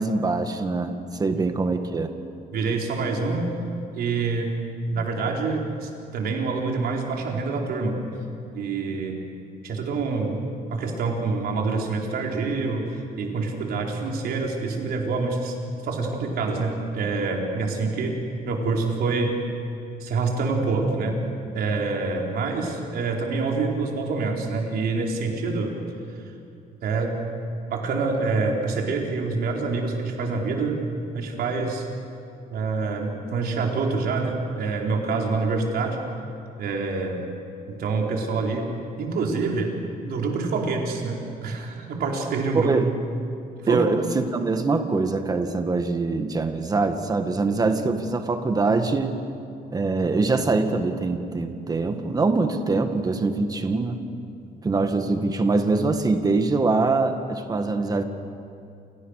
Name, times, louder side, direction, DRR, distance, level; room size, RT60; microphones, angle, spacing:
voice 1, 0.0-2.1 42.5-42.9 43.7-49.2 49.7-54.0 54.6-58.0, right 3 dB, 25° right, 7 dB, 1.8 m, -23 dB
voice 2, 2.5-3.5 3.9-4.6 4.9-8.0 8.5-9.2 9.6-10.4 10.7-12.8 13.2-15.5 15.8-19.4 20.0-21.2 21.5-25.7 26.8-27.2 27.7-30.8 31.1-31.9 32.5-36.0 36.6-37.2 37.7-38.7 39.0-39.8 40.1-42.7 43.6-43.8, right 4 dB, 75° right, 0 dB, 4.5 m, -26 dB
29.5 x 28.5 x 6.7 m, 2.6 s
cardioid pair, 155°, 16 cm